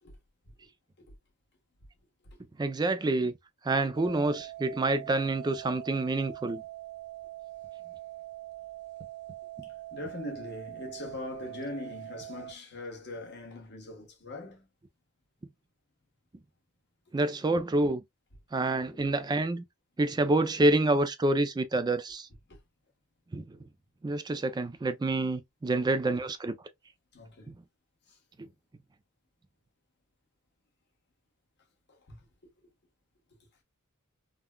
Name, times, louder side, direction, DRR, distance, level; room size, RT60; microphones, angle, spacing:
voice 1, 2.6-3.3 3.7-6.6 17.1-18.0 18.5-19.6 20.0-22.3 23.3-23.6 24.0-26.5 27.5-27.6, right 2 dB, 20° right, 0.3 m, -27 dB
sound 1, 4.0-12.5, right 15 dB, 55° right, 1.0 m, -43 dB
voice 2, 9.6-14.7 18.9-19.3 22.5-22.6 25.6-25.9 27.1-27.5 28.1-28.2 31.9-32.3, left 2 dB, 50° left, 1.2 m, -42 dB
3.6 x 2.2 x 2.2 m
head